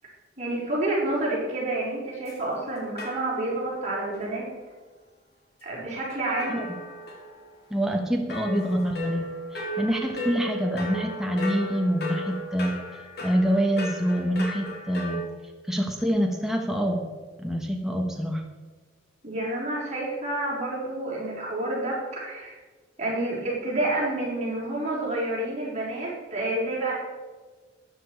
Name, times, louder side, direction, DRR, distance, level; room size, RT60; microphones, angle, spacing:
voice 1, 0.4-4.5 5.6-6.6 19.2-22.6 23.0-26.9, right 2 dB, 35° right, -5 dB, 4.3 m, -29 dB
sound 1, 2.2-2.4 3.0-3.7 4.1-4.2 6.1-7.7 8.3-15.2, equal, 55° left, 2.8 m, -35 dB
voice 2, 7.7-9.3 9.5-12.8 13.2-15.2 15.7-17.0 17.4-18.4, equal, ahead, 1 dB, 1.1 m, -26 dB
13.0 x 9.3 x 4.7 m, 1.3 s
head